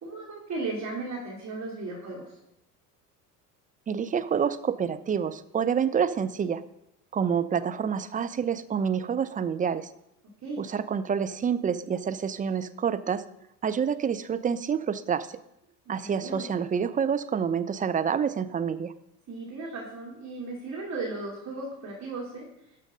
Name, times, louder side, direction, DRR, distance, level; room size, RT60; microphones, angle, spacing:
voice 1, 0.0-2.2 10.4-10.7 15.9-16.5 19.3-22.4, right 3 dB, 35° right, -3 dB, 2.9 m, -36 dB
voice 2, 3.9-6.6 7.1-9.9 10.6-13.2 13.6-15.3 15.9-18.9, right 7 dB, 20° right, 12 dB, 0.4 m, -27 dB
12.0 x 6.3 x 5.1 m, 0.82 s
hypercardioid pair, 70°, 48 cm